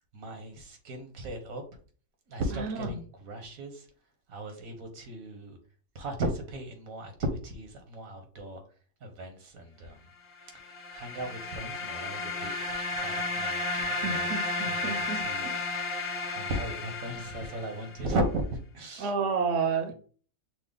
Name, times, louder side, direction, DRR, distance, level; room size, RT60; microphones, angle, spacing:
voice 1, 0.1-1.6 2.3-3.8 4.3-5.6 5.9-8.6 9.0-10.0 10.9-14.4 14.6-15.4 16.2-19.1, right 1 dB, 90° right, 5 dB, 1.6 m, -36 dB
voice 2, 2.5-2.9 14.0-15.5 19.0-19.9, right 5 dB, 65° right, 7 dB, 1.0 m, -31 dB
sound 1, 10.4-18.1, left 2 dB, 70° left, 1.1 m, -33 dB
6.1 x 2.2 x 3.8 m, 0.41 s
omnidirectional pair, 1.4 m